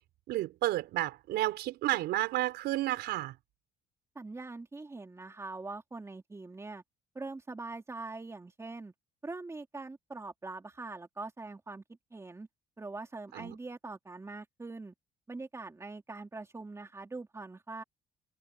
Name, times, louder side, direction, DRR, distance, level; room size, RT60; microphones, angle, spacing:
voice 1, 0.3-3.4 13.3-13.6, right 15 dB, 80° right, 4.6 m, -31 dB
voice 2, 4.1-6.8 7.1-8.9 9.2-11.8 12.1-12.5 12.8-14.9 15.3-17.8, right 3 dB, 15° right, 2.8 m, -43 dB
cardioid pair, 110°, 17 cm